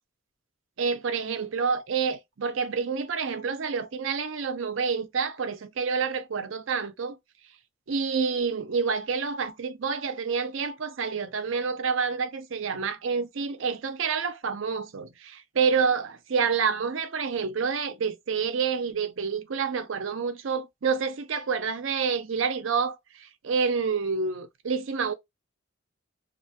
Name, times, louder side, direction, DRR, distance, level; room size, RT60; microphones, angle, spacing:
voice 1, 0.8-7.2 7.9-25.1, right 5 dB, 65° right, 0.5 m, -28 dB
2.4 x 2.2 x 2.7 m
head